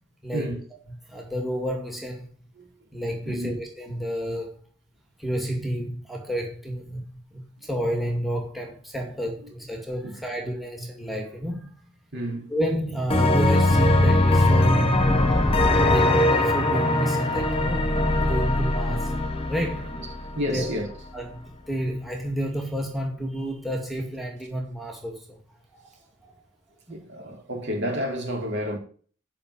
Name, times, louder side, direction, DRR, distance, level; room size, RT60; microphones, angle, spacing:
voice 1, 0.2-0.5 1.1-2.3 2.9-4.6 5.2-7.0 7.3-11.8 12.5-15.3 15.8-19.1 19.5-20.0 20.5-20.7 21.1-25.4 25.7-25.8, equal, ahead, 2.2 m, -30 dB
voice 2, 3.2-3.6 9.2-9.5 10.0-10.4 12.1-12.5 20.0-20.9 26.9-28.8, equal, 60° right, 4.0 m, -31 dB
sound 1, 13.1-20.7, left 1 dB, 30° left, 1.4 m, -21 dB
8.9 x 5.8 x 8.1 m
head